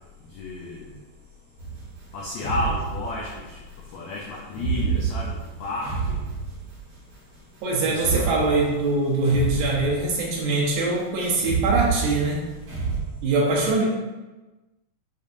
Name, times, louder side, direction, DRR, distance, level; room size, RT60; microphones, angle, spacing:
voice 1, 0.3-0.9 2.1-3.6 3.9-6.2 7.9-8.4, left 2 dB, 85° left, -3 dB, 1.6 m, -32 dB
sound 1, 1.6-3.5 4.5-7.0 7.9-10.4 11.3-13.0, right 6 dB, 60° right, 1.5 m, -29 dB
voice 2, 7.6-12.4 13.2-13.8, right 2 dB, 75° right, -2 dB, 2.0 m, -23 dB
6.7 x 2.7 x 2.5 m, 1.1 s
omnidirectional pair, 3.8 m